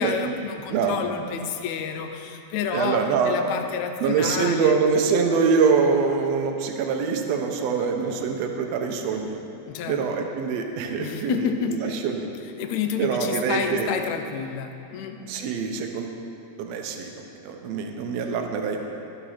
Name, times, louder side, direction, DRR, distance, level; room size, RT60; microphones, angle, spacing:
voice 1, 0.0-4.8 5.1-5.2 9.7-10.2 11.0-11.9 12.6-15.2, left 6 dB, 80° left, 6 dB, 1.9 m, -29 dB
voice 2, 0.7-1.1 2.7-3.3 4.0-9.4 9.9-12.3 13.0-13.9 15.2-16.2 16.6-18.9, right 5 dB, 70° right, 3 dB, 1.8 m, -24 dB
13.0 x 5.1 x 5.7 m, 2.7 s
omnidirectional pair, 3.3 m